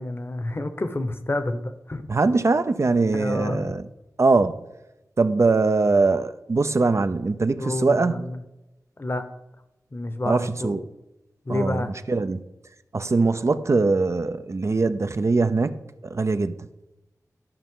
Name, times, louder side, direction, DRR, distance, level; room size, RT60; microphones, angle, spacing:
voice 1, 0.0-2.0 3.1-3.6 7.6-8.4 9.0-9.2 9.9-10.8 11.5-11.9, left 2 dB, 35° left, 0.8 m, -29 dB
voice 2, 2.1-3.9 4.2-4.6 5.2-8.3 10.2-10.8 11.5-12.4 12.9-15.8 16.0-16.6, right 3 dB, 50° right, 0.5 m, -22 dB
12.5 x 5.6 x 3.7 m
wide cardioid pair, 65°, 6 cm